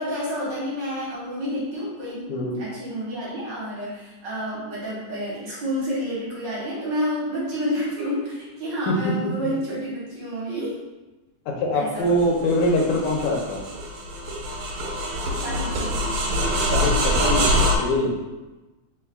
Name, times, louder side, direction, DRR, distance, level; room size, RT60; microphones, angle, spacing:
voice 1, 0.0-10.8 11.7-12.2 15.3-16.2, equal, 55° right, -8 dB, 1.4 m, -29 dB
voice 2, 11.5-13.6 16.7-18.1, left 1 dB, 85° left, 0 dB, 2.1 m, -23 dB
sound 1, 12.1-17.8, equal, 75° right, 1.7 m, -24 dB
4.6 x 3.8 x 2.2 m, 1.1 s
omnidirectional pair, 3.4 m